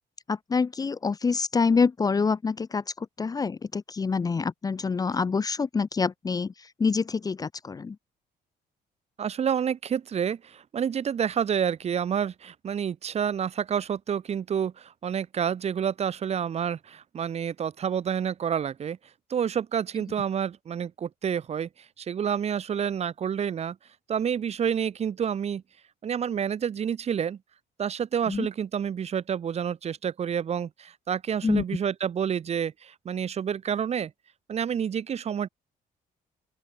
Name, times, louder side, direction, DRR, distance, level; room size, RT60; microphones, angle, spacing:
voice 1, 0.3-8.0 28.3-28.5 31.4-31.6, left 5 dB, 20° left, 1.3 m, -26 dB
voice 2, 9.2-19.0 19.3-21.7 22.0-23.8 24.1-25.6 26.0-27.4 27.8-34.1 34.5-35.5, right 8 dB, 40° right, 3.0 m, -29 dB
open air
cardioid pair, 170°, 17 cm